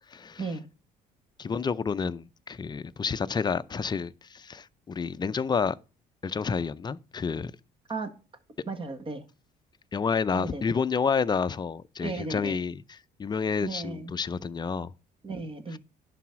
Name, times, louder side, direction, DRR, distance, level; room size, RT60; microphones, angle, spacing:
voice 1, 0.1-0.4 1.4-5.8 6.2-7.5 9.9-14.9 15.7-15.8, left 5 dB, 25° left, 0.5 m, -29 dB
voice 2, 7.9-8.2 8.7-9.2 10.3-10.6 12.0-12.6 13.6-14.1 15.2-15.8, right 3 dB, 30° right, 1.6 m, -35 dB
11.0 x 4.1 x 5.9 m
cardioid pair, 110°, 17 cm